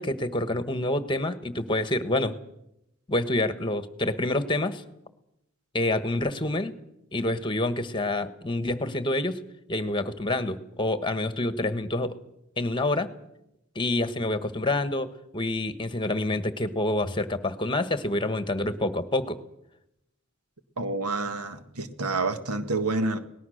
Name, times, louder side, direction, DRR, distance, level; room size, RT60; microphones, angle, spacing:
voice 1, 0.0-2.3 3.1-4.8 5.7-6.7 7.1-9.4 9.7-12.1 12.6-13.1 13.7-19.4, left 2 dB, 20° left, 11 dB, 1.3 m, -27 dB
voice 2, 20.8-23.2, right 3 dB, 85° right, 9 dB, 1.7 m, -28 dB
23.5 x 19.0 x 6.5 m, 0.84 s
head